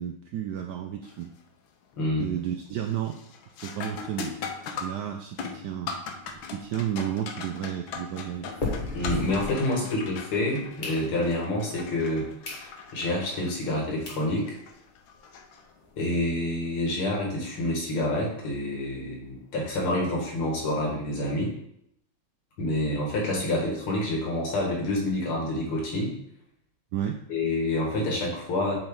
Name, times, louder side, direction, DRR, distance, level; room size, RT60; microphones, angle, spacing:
voice 1, 0.0-1.3 2.2-3.2 3.6-4.4 4.8-5.9 6.5-8.5 26.9-27.2, right 10 dB, 80° right, 4 dB, 0.9 m, -32 dB
sound 1, 1.0-1.4 1.8-2.3 2.6-16.1 18.6-18.7 19.6-19.8, left 5 dB, 70° left, 1.5 m, -40 dB
voice 2, 2.0-2.3 8.9-12.6 12.9-14.6 16.0-21.5 22.6-26.1 27.3-28.8, left 1 dB, 90° left, -2 dB, 2.7 m, -28 dB
sound 2, 6.2-10.2 10.5-11.5 12.0-12.1 12.4-12.7 13.1-13.2 13.8-13.9 14.1-14.3 14.7-14.8 14.9-15.1 15.4-15.5 15.8-16.9, left 2 dB, 25° left, 1.3 m, -37 dB
7.7 x 4.7 x 3.8 m, 0.74 s
omnidirectional pair, 2.3 m